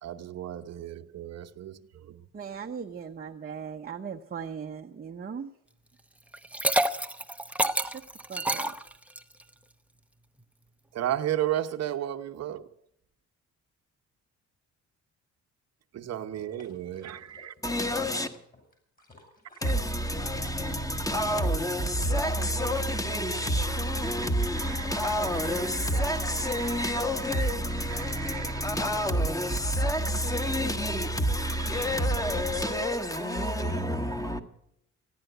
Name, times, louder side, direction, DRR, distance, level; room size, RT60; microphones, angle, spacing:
voice 1, 0.0-2.2 11.0-12.7 15.9-17.5 24.6-26.1 26.4-27.0 27.3-27.5 27.8-28.7 31.6-31.9 34.2-34.4, right 11 dB, 60° right, 1.0 m, -35 dB
voice 2, 2.3-5.5 7.8-8.0 8.3-8.7, right 7 dB, 30° right, 0.9 m, -38 dB
Liquid, 6.3-9.4, right 1 dB, 5° right, 0.8 m, -28 dB
sound 1, 16.2-20.3 20.7-23.2 23.6-23.7, left 2 dB, 30° left, 6.0 m, -52 dB
voice 3, 17.6-18.3 19.6-34.4, equal, 10° left, 1.6 m, -28 dB
15.0 x 10.5 x 8.0 m
cardioid pair, 90°, 30 cm